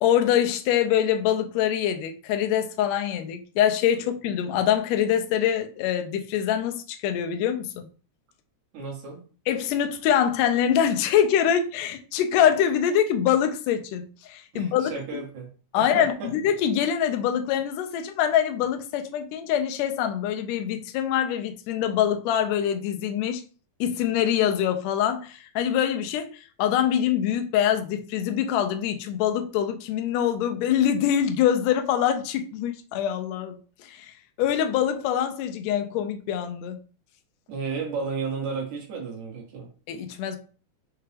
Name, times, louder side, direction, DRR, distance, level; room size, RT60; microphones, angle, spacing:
voice 1, 0.0-7.9 9.5-15.2 15.7-23.4 23.8-26.3 26.6-34.1 34.4-36.8 39.9-40.4, left 9 dB, 80° left, 1.6 m, -24 dB
voice 2, 8.7-9.2 14.5-15.5 15.8-16.3 37.5-39.7, right 5 dB, 70° right, 2.5 m, -33 dB
5.8 x 2.2 x 3.3 m
omnidirectional pair, 3.6 m